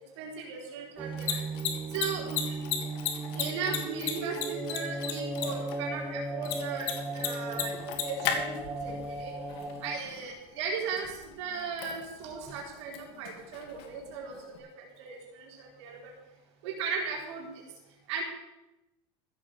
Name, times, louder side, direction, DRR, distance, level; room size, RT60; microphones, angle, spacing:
voice 1, 0.2-1.4 1.9-2.6 3.3-7.7 8.0-9.3 9.8-16.0 16.6-17.7 18.1-18.2, right 5 dB, 85° right, -1 dB, 4.3 m, -37 dB
Mechanisms, 1.0-14.6, left 8 dB, 70° left, 2.6 m, -38 dB
sound 1, 1.0-10.0, right 2 dB, 10° right, 1.0 m, -37 dB
15.0 x 8.8 x 6.8 m, 0.93 s
cardioid pair, 160°, 14 cm